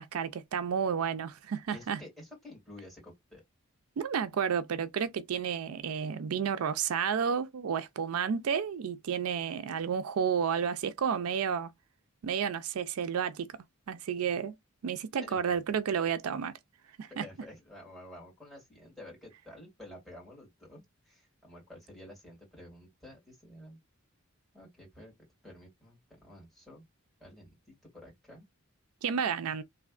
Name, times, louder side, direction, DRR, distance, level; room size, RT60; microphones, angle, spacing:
voice 1, 0.0-2.0 4.0-11.7 12.2-13.5 13.9-14.5 14.8-16.5 17.0-17.3 29.0-29.6, right 7 dB, 80° right, 0.4 m, -31 dB
voice 2, 1.7-3.4 15.2-15.6 17.1-23.8 24.5-25.1 25.4-26.9 27.2-28.5, left 1 dB, ahead, 2.2 m, -51 dB
3.2 x 2.6 x 2.4 m
head